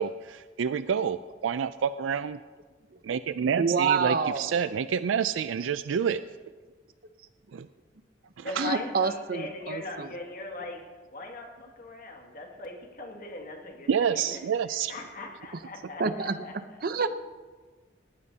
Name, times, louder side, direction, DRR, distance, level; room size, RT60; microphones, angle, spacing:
voice 1, 0.0-2.4 3.0-6.2 7.5-7.7 8.4-8.6 13.9-14.9, right 7 dB, 85° right, 13 dB, 0.4 m, -28 dB
voice 2, 3.6-4.6 8.6-10.1 16.0-17.1, right 5 dB, 50° right, 10 dB, 0.7 m, -28 dB
voice 3, 8.4-10.8 11.1-14.4 14.9-16.5, left 2 dB, 50° left, 1 dB, 2.1 m, -39 dB
19.5 x 15.0 x 2.8 m, 1.4 s
head